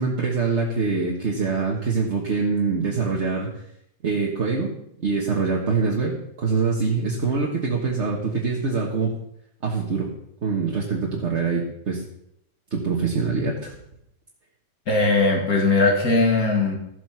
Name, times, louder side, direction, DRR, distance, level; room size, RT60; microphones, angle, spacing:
voice 1, 0.0-3.5 4.0-9.1 9.6-10.1 10.4-12.0 12.7-13.7, right 4 dB, 50° right, -2 dB, 1.8 m, -24 dB
voice 2, 14.9-16.8, left 3 dB, 80° left, 1 dB, 3.0 m, -19 dB
14.0 x 7.7 x 5.8 m, 0.76 s
omnidirectional pair, 1.5 m